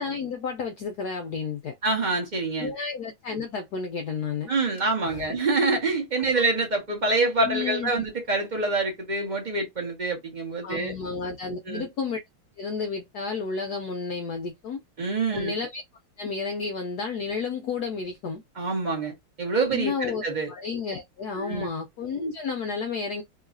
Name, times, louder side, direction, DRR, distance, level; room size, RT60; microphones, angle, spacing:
voice 1, 0.0-1.8 2.6-4.5 5.0-5.2 7.4-8.0 10.6-12.2 12.6-14.8 15.3-15.8 16.2-18.4 19.7-23.2, left 5 dB, 75° left, 0.9 m, -31 dB
voice 2, 1.8-2.7 4.5-10.9 11.7-11.8 15.0-15.5 18.6-20.5 21.4-21.7, right 3 dB, 30° right, 0.9 m, -26 dB
3.0 x 3.0 x 2.5 m
omnidirectional pair, 2.3 m